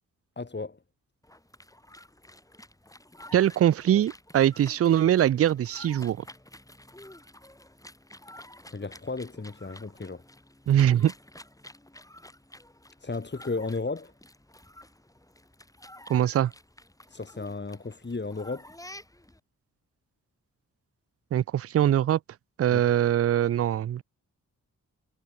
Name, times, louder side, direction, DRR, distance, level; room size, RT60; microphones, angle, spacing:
voice 1, 0.4-0.8 8.7-10.2 13.0-14.1 17.1-18.7 22.7-22.9, left 3 dB, 30° left, 3.1 m, -34 dB
sound 1, 1.2-19.4, left 1 dB, 10° left, 3.3 m, -50 dB
voice 2, 3.3-6.2 10.7-11.1 16.1-16.5 21.3-22.2 22.6-24.0, right 11 dB, 45° right, 0.4 m, -22 dB
cardioid pair, 55°, 34 cm